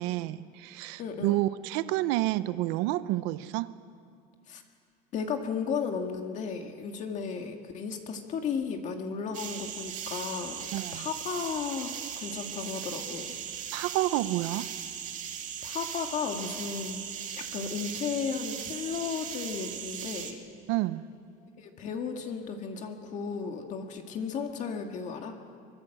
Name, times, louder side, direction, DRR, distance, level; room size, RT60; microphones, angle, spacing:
voice 1, 0.0-3.7 10.7-11.1 13.7-14.7 20.7-21.1, right 16 dB, 80° right, 0.8 m, -29 dB
voice 2, 1.0-1.4 4.5-4.6 5.1-10.7 10.9-11.9 12.2-13.3 15.6-17.0 17.3-20.5 21.6-25.4, left 6 dB, 40° left, 1.9 m, -34 dB
sound 1, 9.3-20.3, right 8 dB, 45° right, 2.2 m, -38 dB
24.0 x 22.0 x 7.8 m
cardioid pair, 160°, 19 cm